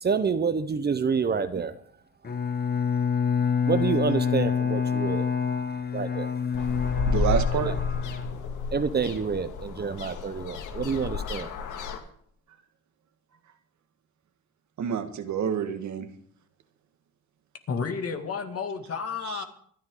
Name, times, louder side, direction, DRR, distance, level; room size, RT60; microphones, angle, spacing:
voice 1, 0.0-1.8 3.7-5.3 5.9-6.3 7.1-7.4 7.7-7.8 8.7-11.5, right 5 dB, 35° right, 0.9 m, -28 dB
Bowed string instrument, 2.2-8.9, left 6 dB, 30° left, 1.2 m, -27 dB
sound 1, 6.5-12.0, left 3 dB, 80° left, 2.1 m, -31 dB
voice 2, 7.0-7.7 14.8-16.1 19.2-19.5, right 7 dB, 70° right, 1.8 m, -28 dB
voice 3, 17.7-19.5, left 5 dB, 50° left, 2.3 m, -31 dB
25.5 x 10.5 x 3.8 m
cardioid pair, 90°, 30 cm